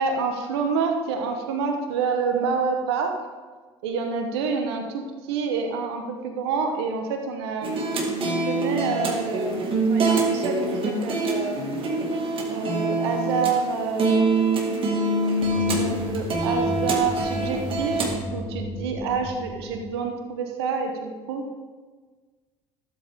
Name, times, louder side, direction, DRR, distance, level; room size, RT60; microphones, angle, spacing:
voice 1, 0.0-3.1 3.8-8.0 8.3-9.6 9.9-11.6 12.5-14.3 15.5-18.0 18.3-21.5, right 5 dB, 85° right, 4 dB, 1.1 m, -28 dB
sound 1, 7.6-18.2, right 2 dB, 40° right, 2.1 m, -25 dB
sound 2, 15.4-20.1, left 1 dB, 40° left, 1.8 m, -34 dB
12.0 x 7.8 x 3.6 m, 1.4 s
hypercardioid pair, 75°, 13 cm